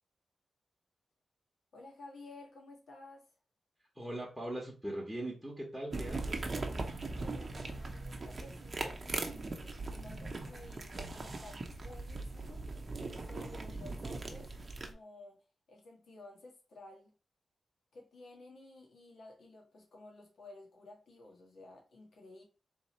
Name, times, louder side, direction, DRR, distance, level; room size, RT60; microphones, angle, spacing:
voice 1, 1.7-3.3 7.0-12.7 13.2-15.4 15.7-17.1 17.9-22.4, left 2 dB, 75° left, 1.5 m, -54 dB
voice 2, 4.0-6.5 13.7-13.9, right 1 dB, ahead, 1.1 m, -41 dB
sound 1, 5.9-14.9, right 3 dB, 35° right, 0.7 m, -40 dB
3.6 x 2.8 x 4.2 m
wide cardioid pair, 155°, 0 cm